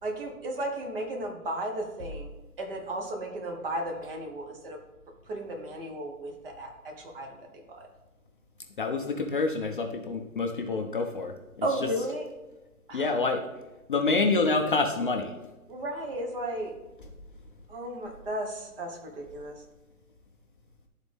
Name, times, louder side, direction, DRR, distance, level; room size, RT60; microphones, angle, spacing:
voice 1, 0.0-4.8 5.3-7.9 11.6-12.3 12.9-13.2 15.7-16.7 17.7-19.6, right 1 dB, 40° right, 2 dB, 1.4 m, -34 dB
voice 2, 8.8-11.3 12.9-13.4 13.9-15.3, left 3 dB, 35° left, 3 dB, 0.5 m, -27 dB
11.5 x 4.0 x 3.5 m, 1.0 s
hypercardioid pair, 145°, 44 cm